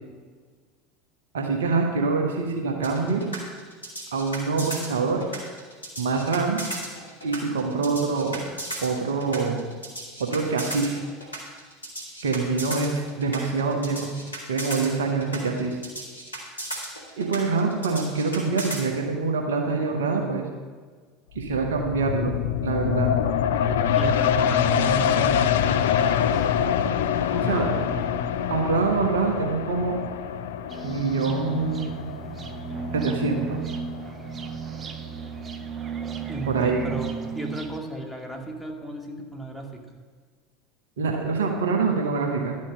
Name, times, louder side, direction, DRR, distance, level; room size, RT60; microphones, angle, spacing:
voice 1, 1.3-3.2 4.1-5.2 6.0-6.6 7.2-8.4 8.8-9.6 10.2-11.0 12.2-14.1 14.5-15.8 17.2-20.5 21.3-22.3 22.6-23.1 27.5-27.6 28.5-30.0 30.8-32.1 32.9-33.6 36.5-36.8 41.0-42.6, right 4 dB, 70° right, 1 dB, 1.4 m, -25 dB
sound 1, 2.8-18.8, right 1 dB, 90° left, 2.3 m, -35 dB
sound 2, 21.4-34.6 35.1-35.2, left 8 dB, 65° left, 0.5 m, -25 dB
voice 2, 23.7-26.5 27.3-28.4 36.3-39.8, right 2 dB, 5° right, 0 dB, 2.1 m, -34 dB
sound 3, 30.7-37.8, right 6 dB, 30° right, 0.9 m, -34 dB
11.5 x 6.2 x 7.5 m, 1.5 s
figure-of-eight pair, 75°, 0 cm